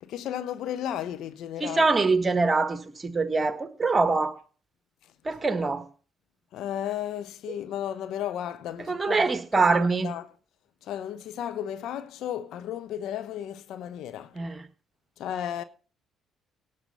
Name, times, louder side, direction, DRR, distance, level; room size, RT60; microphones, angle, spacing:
voice 1, 0.0-1.8 6.5-9.3 9.6-10.3 10.9-14.3 15.2-15.6, left 10 dB, 65° left, 0.9 m, -34 dB
voice 2, 1.6-4.4 5.3-5.8 8.9-10.1 14.4-14.6, right 3 dB, 25° right, 1.7 m, -24 dB
17.5 x 6.8 x 5.5 m
hypercardioid pair, 45°, 0 cm